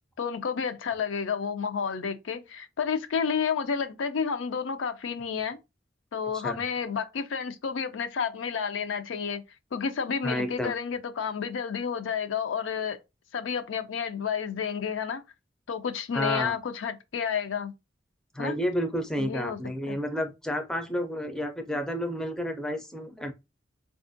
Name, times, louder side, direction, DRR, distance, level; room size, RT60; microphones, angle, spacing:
voice 1, 0.2-5.6 6.1-9.4 9.7-13.0 13.3-15.2 15.7-17.7 18.4-18.5 19.2-19.6 19.9-20.0, left 6 dB, 90° left, 0.4 m, -30 dB
voice 2, 10.2-10.7 16.1-16.5 18.3-23.3, equal, 5° left, 0.4 m, -30 dB
4.2 x 2.4 x 2.6 m
head